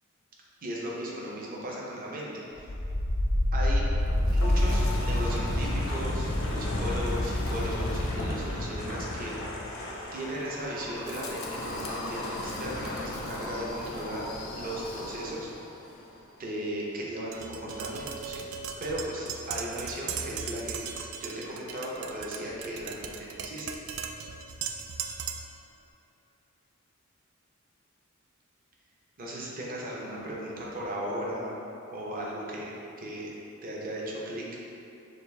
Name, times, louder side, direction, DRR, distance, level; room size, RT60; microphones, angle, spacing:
voice 1, 0.6-2.7 3.5-3.8 4.3-9.4 10.1-14.2 14.5-15.5 16.4-18.5 18.8-20.8 21.2-23.8 29.2-31.6 31.9-34.4, right 1 dB, 45° right, -4 dB, 0.7 m, -36 dB
Wind, 2.6-15.6, left 1 dB, 85° left, 0.7 m, -30 dB
Tap, 17.3-25.6, right 6 dB, 80° right, 0.3 m, -38 dB
6.6 x 2.3 x 3.4 m, 2.9 s
head